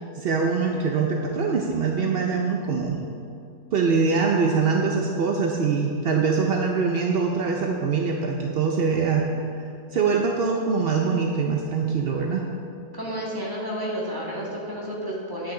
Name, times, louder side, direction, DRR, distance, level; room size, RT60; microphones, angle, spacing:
voice 1, 0.1-3.0 3.7-9.3 9.9-12.5, right 5 dB, 60° right, 1 dB, 0.6 m, -23 dB
voice 2, 12.9-15.5, equal, 15° right, -5 dB, 1.8 m, -31 dB
10.0 x 8.7 x 3.8 m, 2.5 s
omnidirectional pair, 1.7 m